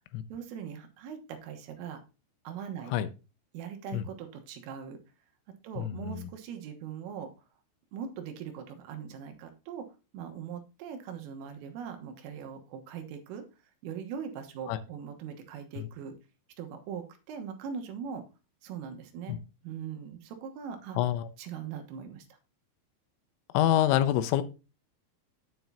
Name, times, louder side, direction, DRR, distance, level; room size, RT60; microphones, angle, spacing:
voice 1, 0.3-2.0 2.5-2.9 3.5-5.0 5.6-7.3 7.9-9.9 10.1-13.4 13.8-16.2 16.6-18.2 18.6-19.4 19.6-21.0 21.4-22.3, right 7 dB, 85° right, 6 dB, 3.8 m, -40 dB
voice 2, 5.8-6.3 14.7-14.8 15.8-15.9 19.3-19.4 21.0-21.3 23.5-24.4, left 12 dB, 85° left, 12 dB, 3.3 m, -26 dB
9.2 x 8.7 x 2.8 m, 0.30 s
omnidirectional pair, 5.8 m